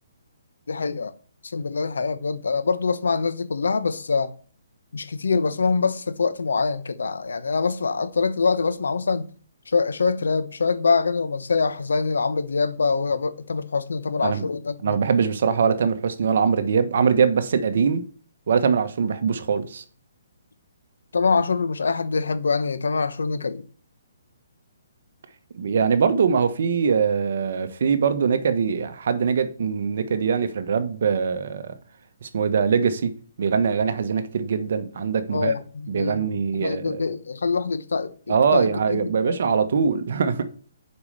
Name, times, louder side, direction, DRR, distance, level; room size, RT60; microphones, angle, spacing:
voice 1, 0.7-1.1 1.4-4.3 4.9-9.3 9.7-15.0 21.1-23.7 35.3-36.3 36.6-39.4, left 4 dB, 85° left, 1.0 m, -24 dB
voice 2, 14.8-18.0 18.5-19.8 25.6-31.8 32.2-35.5 35.9-37.0 38.3-40.5, right 6 dB, 60° right, 1.1 m, -22 dB
6.9 x 5.4 x 6.6 m
hypercardioid pair, 155°, 0 cm